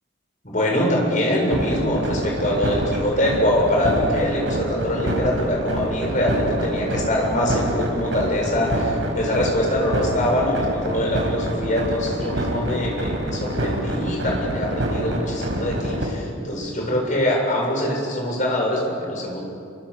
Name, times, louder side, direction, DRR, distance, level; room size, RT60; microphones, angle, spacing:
voice 1, 0.4-19.4, left 1 dB, 40° left, -1 dB, 7.5 m, -23 dB
sound 1, 1.5-16.0, right 1 dB, 70° right, 5.1 m, -26 dB
28.5 x 25.0 x 7.4 m, 2.4 s
head